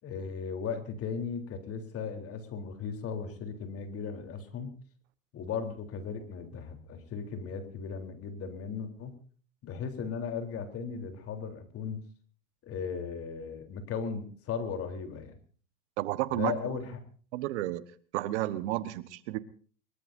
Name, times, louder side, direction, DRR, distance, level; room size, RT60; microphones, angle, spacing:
voice 1, 0.0-4.7 5.3-9.1 9.6-12.0 12.6-15.4 16.3-16.9, left 6 dB, 35° left, 6 dB, 3.7 m, -37 dB
voice 2, 16.0-16.8 17.3-17.8 18.1-19.4, right 16 dB, 60° right, 13 dB, 1.4 m, -32 dB
23.5 x 22.5 x 2.7 m, 0.43 s
hypercardioid pair, 115°, 39 cm